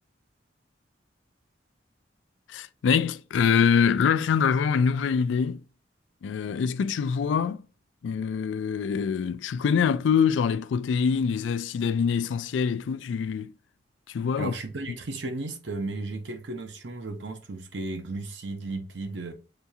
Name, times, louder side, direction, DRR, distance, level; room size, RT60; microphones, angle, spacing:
voice 1, 2.5-5.6 6.2-7.6 8.0-13.5 14.1-14.5, left 6 dB, 85° left, 0.3 m, -24 dB
voice 2, 14.4-19.3, right 2 dB, 75° right, 0.7 m, -34 dB
6.6 x 2.3 x 2.7 m
head